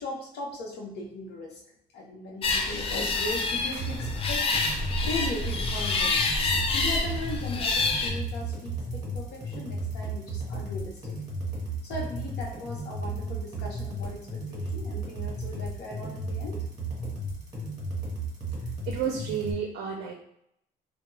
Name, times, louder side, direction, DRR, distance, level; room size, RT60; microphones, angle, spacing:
voice 1, 0.0-1.6 1.9-4.8 5.0-6.2 6.7-11.1 11.8-16.6, left 2 dB, 75° left, -1 dB, 0.8 m, -38 dB
sound 1, 2.4-8.1, left 3 dB, 35° left, 0.4 m, -27 dB
sound 2, 3.5-19.5, right 2 dB, 25° right, 1.2 m, -34 dB
voice 2, 18.9-20.1, right 7 dB, 70° right, 1 dB, 0.4 m, -31 dB
2.2 x 2.2 x 3.1 m, 0.75 s
cardioid pair, 110°, 17 cm